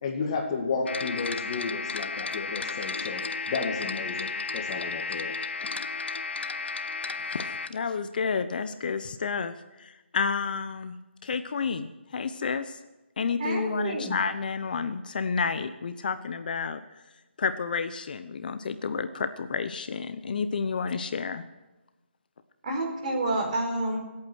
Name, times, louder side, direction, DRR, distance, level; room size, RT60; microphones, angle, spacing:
voice 1, 0.0-5.3, left 4 dB, 30° left, 3 dB, 2.0 m, -32 dB
sound 1, 0.9-7.7, left 4 dB, 70° left, 1.0 m, -33 dB
voice 2, 7.3-11.0 11.2-12.8 13.2-16.8 17.4-21.4, left 5 dB, 45° left, 10 dB, 0.9 m, -30 dB
voice 3, 13.4-14.1 22.6-24.0, right 2 dB, 40° right, 2 dB, 4.4 m, -29 dB
25.0 x 8.7 x 6.3 m, 1.1 s
hypercardioid pair, 160°, 6 cm